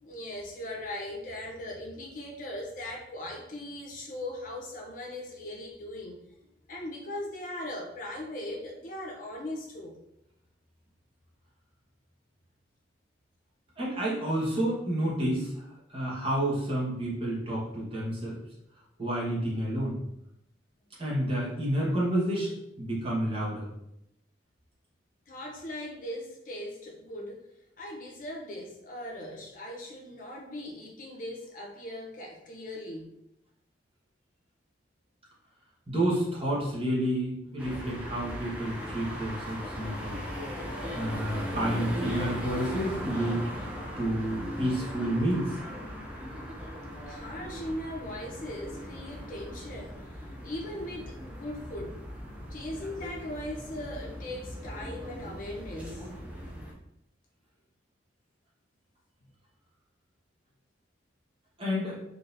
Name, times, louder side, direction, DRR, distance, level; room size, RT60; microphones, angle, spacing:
voice 1, 0.0-6.2 6.7-10.0 25.3-27.4 27.8-33.1 47.1-52.0 52.5-56.1, left 1 dB, 45° left, -1 dB, 0.6 m, -39 dB
voice 2, 13.8-18.4 19.0-20.0 21.0-23.7 35.9-40.3 40.9-43.4 44.0-45.6 61.6-62.0, right 1 dB, 30° right, -6 dB, 1.1 m, -30 dB
sound 1, 37.6-56.7, equal, 5° right, 0.5 m, -38 dB
3.8 x 2.8 x 2.5 m, 0.80 s
head